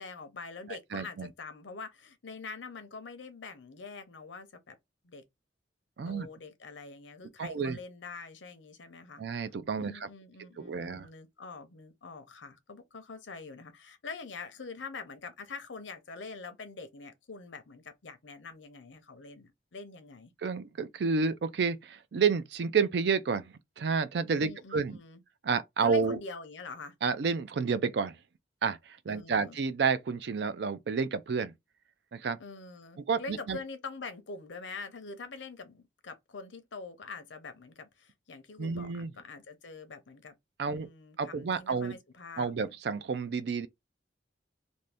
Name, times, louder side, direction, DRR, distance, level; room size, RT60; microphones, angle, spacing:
voice 1, 0.0-4.8 5.0-5.2 6.1-9.2 9.8-20.3 24.4-25.2 25.8-26.9 29.1-29.6 32.4-40.3 40.7-42.7, left 4 dB, 85° left, 0.7 m, -45 dB
voice 2, 0.9-1.3 6.0-6.3 7.4-7.8 9.2-10.1 10.6-11.1 20.4-25.0 25.4-26.2 27.0-28.2 28.6-31.5 32.1-32.4 33.1-33.6 38.6-39.1 40.6-40.9 41.2-42.0 42.4-43.7, right 5 dB, 60° right, 0.4 m, -30 dB
2.6 x 2.6 x 3.3 m
head